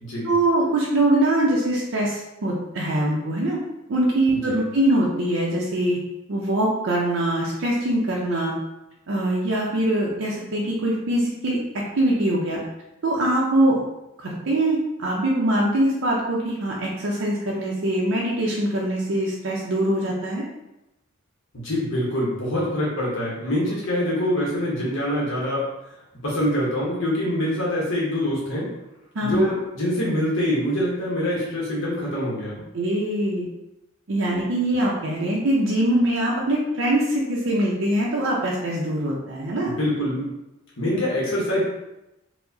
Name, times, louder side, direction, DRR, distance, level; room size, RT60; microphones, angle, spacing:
voice 1, 0.2-3.6 3.9-6.0 6.3-8.5 9.1-12.6 13.0-13.8 14.2-20.4 29.1-29.5 32.7-33.5 34.1-39.7, right 1 dB, 70° right, -4 dB, 0.6 m, -23 dB
voice 2, 21.5-25.6 26.2-28.7 29.2-32.6 39.6-40.3 40.8-41.6, equal, 70° left, -6 dB, 0.9 m, -24 dB
4.6 x 2.1 x 2.7 m, 0.91 s
head